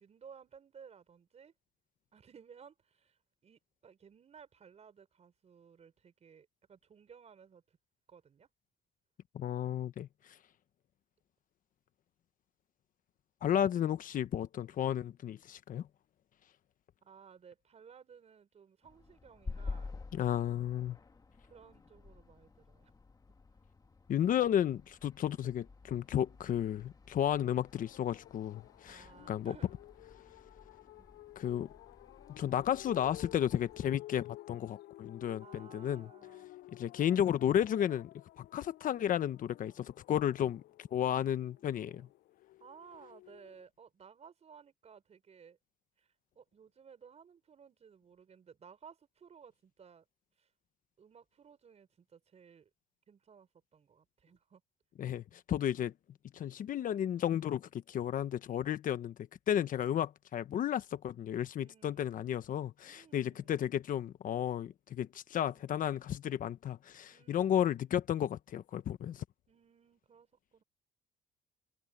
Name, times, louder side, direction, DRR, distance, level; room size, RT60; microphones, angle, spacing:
voice 1, 0.0-1.5 2.1-7.8 8.1-8.5 17.0-19.9 21.5-22.9 28.8-29.8 31.0-31.1 35.4-36.5 40.8-42.1 42.6-45.6 46.0-50.1 50.4-50.5 51.0-52.7 53.1-54.6 61.6-62.1 62.8-63.8 67.1-68.0 69.5-70.6, right 7 dB, 40° right, 4.9 m, -58 dB
voice 2, 9.3-10.4 13.4-15.9 20.1-21.0 24.1-29.5 31.4-31.7 32.3-36.1 36.7-38.1 38.4-42.1 55.0-55.9 56.3-59.1 59.5-69.2, left 10 dB, 55° left, 1.0 m, -33 dB
sound 1, 18.8-33.9, left 4 dB, 20° left, 2.0 m, -50 dB
sound 2, 27.7-43.6, left 16 dB, 80° left, 7.6 m, -54 dB
cardioid pair, 110°, 17 cm